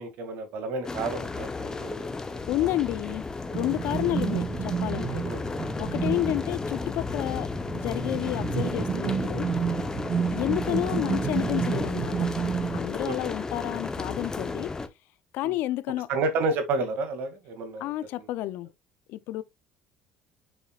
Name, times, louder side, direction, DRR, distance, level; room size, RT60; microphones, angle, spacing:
voice 1, 0.0-2.4 3.8-4.0 5.2-5.4 11.5-11.6 13.1-13.2 15.4-15.6 16.1-17.9, right 3 dB, 70° right, 2.2 m, -31 dB
sound 1, 0.8-14.9, left 3 dB, 20° left, 0.9 m, -33 dB
voice 2, 2.5-5.2 5.7-7.5 7.7-9.5 10.3-12.3 12.7-14.7 15.3-16.1 17.8-18.7 19.1-19.4, left 15 dB, 75° left, 0.5 m, -30 dB
sound 2, 3.5-12.8, right 7 dB, 40° right, 0.8 m, -30 dB
7.1 x 5.7 x 2.4 m
cardioid pair, 105°, 3 cm